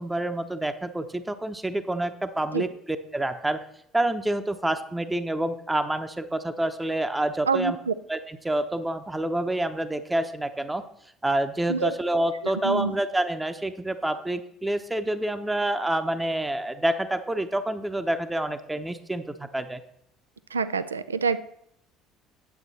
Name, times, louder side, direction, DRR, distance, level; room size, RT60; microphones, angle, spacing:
voice 1, 0.0-3.6 3.9-7.8 8.1-10.8 11.2-19.8, right 1 dB, 10° right, 9 dB, 0.8 m, -28 dB
voice 2, 7.5-7.9 11.7-11.9 12.6-12.9 20.5-21.4, right 5 dB, 85° right, 14 dB, 0.3 m, -26 dB
9.3 x 7.8 x 4.1 m, 0.73 s
figure-of-eight pair, 60°, 0 cm